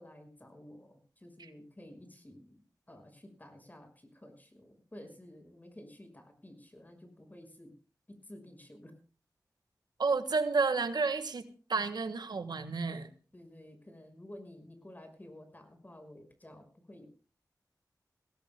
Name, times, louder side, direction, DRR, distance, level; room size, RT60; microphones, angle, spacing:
voice 1, 0.0-2.6 2.9-7.7 8.2-8.9 13.3-17.1, left 1 dB, 25° left, 7 dB, 5.6 m, -52 dB
voice 2, 10.0-13.1, right 4 dB, 90° right, 10 dB, 1.5 m, -31 dB
22.5 x 17.0 x 2.2 m, 0.37 s
wide cardioid pair, 65°, 7 cm